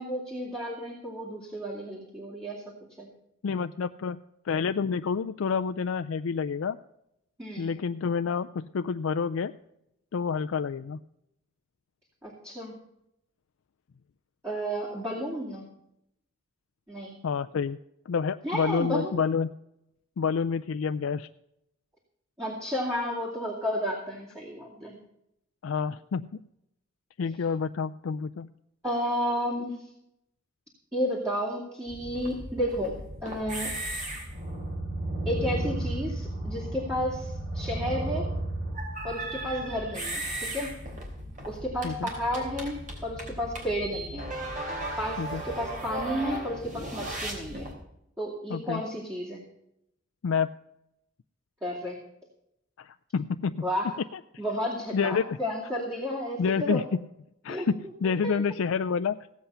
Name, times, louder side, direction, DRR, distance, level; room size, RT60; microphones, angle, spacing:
voice 1, 0.0-3.1 7.4-7.7 12.2-12.8 14.4-15.7 16.9-17.2 18.4-19.2 22.4-25.0 28.8-29.8 30.9-33.0 33.2-33.7 35.2-38.3 39.0-40.7 41.4-44.3 45.0-47.7 48.2-49.4 51.6-52.0 53.6-53.9 54.4-56.8 57.5-57.7 58.0-58.3, equal, 15° right, -4 dB, 2.6 m, -32 dB
voice 2, 3.4-6.8 7.6-9.5 10.1-11.0 17.2-17.8 18.1-19.5 20.2-21.3 25.6-26.4 27.2-28.5 41.8-42.1 45.2-45.4 48.5-48.8 50.2-50.5 52.8-53.7 54.9-55.4 56.4-57.0 57.4-59.2, left 6 dB, 85° left, 9 dB, 0.4 m, -28 dB
sound 1, 31.9-47.7, right 1 dB, 40° right, 3.2 m, -35 dB
16.5 x 8.0 x 5.6 m, 0.81 s
head